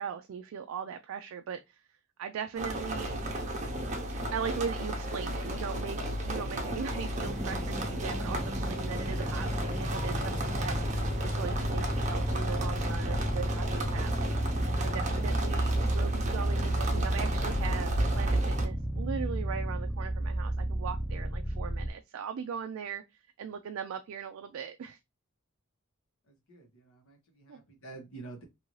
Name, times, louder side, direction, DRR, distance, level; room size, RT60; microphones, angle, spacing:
voice 1, 0.0-1.8 2.2-3.2 4.3-11.0 11.2-14.3 14.8-23.0 23.4-25.0 27.5-27.6, right 7 dB, 70° right, 0.3 m, -39 dB
sound 1, 2.6-18.7, right 1 dB, 35° right, 0.7 m, -33 dB
sound 2, 7.2-21.9, right 1 dB, ahead, 0.4 m, -32 dB
voice 2, 26.3-28.4, right 3 dB, 80° left, 1.2 m, -48 dB
2.7 x 2.6 x 3.0 m
head